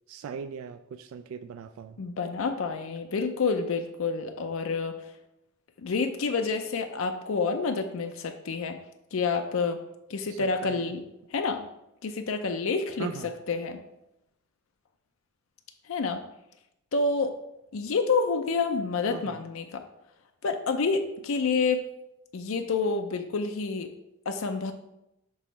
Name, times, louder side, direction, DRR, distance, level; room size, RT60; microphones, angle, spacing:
voice 1, 0.1-2.0 10.3-10.9 13.0-13.3 19.1-19.4, right 6 dB, 80° right, 9 dB, 0.3 m, -39 dB
voice 2, 2.0-5.0 5.8-8.8 9.1-9.8 10.1-11.0 11.3-11.7 12.0-13.1 13.5-13.8 15.9-16.2 16.9-17.3 17.7-19.8 20.4-21.8 22.3-23.9 24.3-24.7, left 4 dB, 80° left, 6 dB, 0.5 m, -28 dB
6.1 x 3.0 x 5.6 m, 0.85 s
head